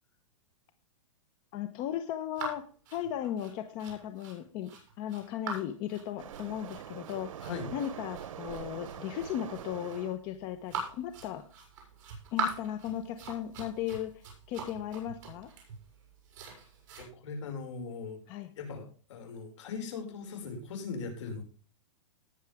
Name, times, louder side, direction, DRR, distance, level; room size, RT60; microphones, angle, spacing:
voice 1, 1.5-2.6 2.9-4.7 5.0-7.3 7.7-11.4 12.3-15.5 18.3-18.5, left 10 dB, 30° left, 9 dB, 1.0 m, -36 dB
sound 1, 2.3-17.0, right 3 dB, 40° right, 6.3 m, -42 dB
Waves surf, 6.2-10.2, right 10 dB, 85° right, 0.9 m, -44 dB
voice 2, 7.4-7.7 17.0-18.2 18.6-21.4, left 5 dB, 65° left, 4 dB, 5.6 m, -39 dB
18.5 x 7.2 x 3.5 m, 0.38 s
supercardioid pair, 165°, 17 cm